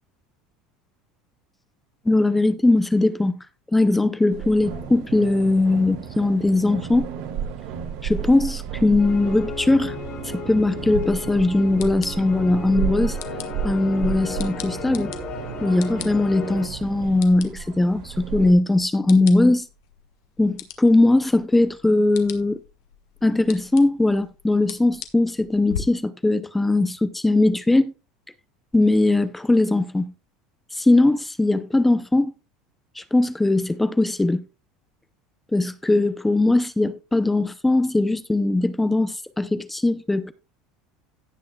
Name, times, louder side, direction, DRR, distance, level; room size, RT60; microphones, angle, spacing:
voice 1, 2.1-3.4 3.7-7.1 8.0-10.0 10.2-13.2 13.6-15.1 15.6-19.7 20.4-22.6 23.2-27.9 28.7-30.1 30.7-32.3 33.0-34.4 35.5-40.3, left 2 dB, 5° left, 0.5 m, -20 dB
sound 1, 4.3-18.5, right 8 dB, 70° right, 2.6 m, -33 dB
sound 2, 9.0-16.7, left 5 dB, 40° left, 2.9 m, -36 dB
sound 3, 10.9-25.8, left 10 dB, 90° left, 1.3 m, -41 dB
17.0 x 6.2 x 2.3 m
cardioid pair, 145°, 2 cm